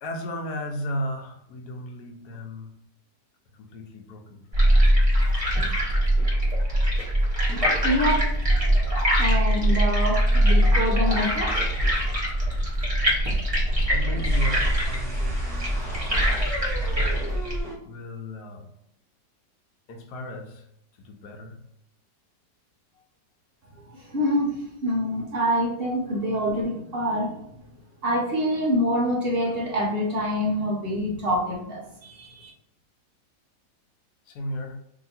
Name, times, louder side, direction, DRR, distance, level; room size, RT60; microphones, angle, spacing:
voice 1, 0.0-2.7 3.5-4.7 13.9-16.4 17.8-18.7 19.9-20.7 21.0-21.6 34.3-34.8, equal, 70° left, 4 dB, 1.1 m, -35 dB
sound 1, 4.5-17.6, equal, 25° right, 0.8 m, -22 dB
voice 2, 7.8-8.2 9.2-11.5 23.9-27.4 28.0-32.5, equal, 60° right, -2 dB, 0.6 m, -26 dB
sound 2, 14.2-17.8, equal, ahead, 0.6 m, -38 dB
2.8 x 2.7 x 4.1 m, 0.75 s
omnidirectional pair, 1.9 m